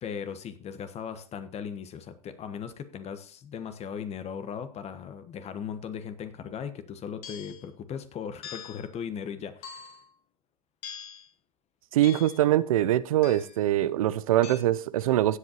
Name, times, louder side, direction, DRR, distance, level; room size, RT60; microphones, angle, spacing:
voice 1, 0.0-9.9, left 7 dB, 35° left, 1.2 m, -38 dB
sound 1, 7.2-7.6 8.4-8.9 9.6-10.1 10.8-11.3 12.0-12.5 13.2-13.6 14.4-14.6, left 8 dB, 55° left, 2.6 m, -43 dB
voice 2, 11.9-15.4, right 13 dB, 80° right, 0.5 m, -23 dB
16.0 x 7.9 x 2.9 m
hypercardioid pair, 90°, 18 cm